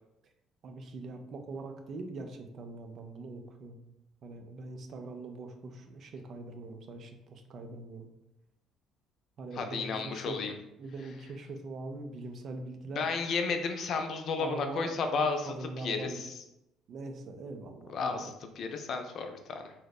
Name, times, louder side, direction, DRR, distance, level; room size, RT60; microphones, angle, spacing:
voice 1, 0.6-3.8 4.2-8.1 9.4-13.1 14.4-14.8 15.1-16.2 16.9-18.3, right 3 dB, 55° right, 5 dB, 0.3 m, -42 dB
voice 2, 9.6-10.5 13.0-15.5 15.8-16.3 17.9-19.7, left 4 dB, 60° left, 5 dB, 0.3 m, -33 dB
2.7 x 2.0 x 2.2 m, 0.89 s
supercardioid pair, 70°, 0 cm